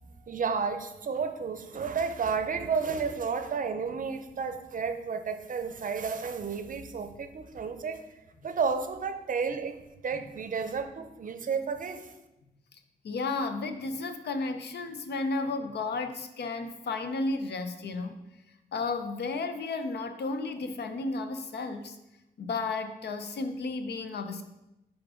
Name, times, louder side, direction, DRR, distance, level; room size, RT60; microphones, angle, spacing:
voice 1, 0.0-8.0 8.4-9.8 10.0-12.1, right 5 dB, 50° right, 9 dB, 0.6 m, -32 dB
voice 2, 13.0-18.2 18.7-22.0 22.4-24.4, left 3 dB, 80° left, 8 dB, 0.6 m, -33 dB
9.9 x 3.7 x 3.7 m, 0.94 s
wide cardioid pair, 135°, 17 cm